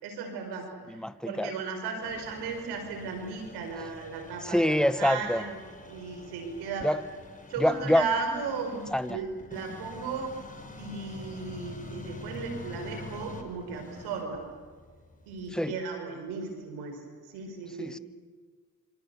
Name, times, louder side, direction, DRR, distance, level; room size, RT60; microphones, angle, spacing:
voice 1, 0.0-1.0 1.2-5.6 5.9-6.9 7.5-10.3 10.8-14.4 15.3-17.0 17.3-17.9, right 4 dB, 90° right, 4.9 m, -35 dB
voice 2, 0.9-1.5 4.4-5.4 6.8-7.0 7.6-8.0 8.9-9.2 15.5-15.8 17.8-18.0, left 1 dB, ahead, 1.1 m, -25 dB
sound 1, 2.0-15.6, left 3 dB, 20° left, 4.9 m, -46 dB
27.0 x 26.5 x 7.0 m
supercardioid pair, 65°, 38 cm